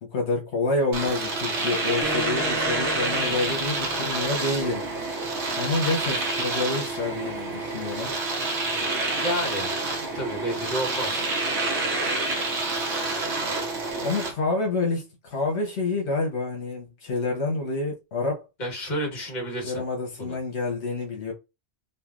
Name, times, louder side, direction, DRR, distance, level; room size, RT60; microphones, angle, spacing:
voice 1, 0.0-4.9 5.6-8.1 14.0-18.5 19.6-21.3, left 3 dB, 75° left, 1.1 m, -28 dB
Domestic sounds home sounds, 0.9-14.3, right 2 dB, 85° right, 1.2 m, -28 dB
Acoustic guitar, 2.0-4.8, equal, 15° right, 0.6 m, -37 dB
voice 2, 9.2-9.7 10.0-11.3 18.6-19.8 20.2-20.4, equal, 45° left, 1.4 m, -30 dB
3.3 x 2.5 x 2.3 m
omnidirectional pair, 1.1 m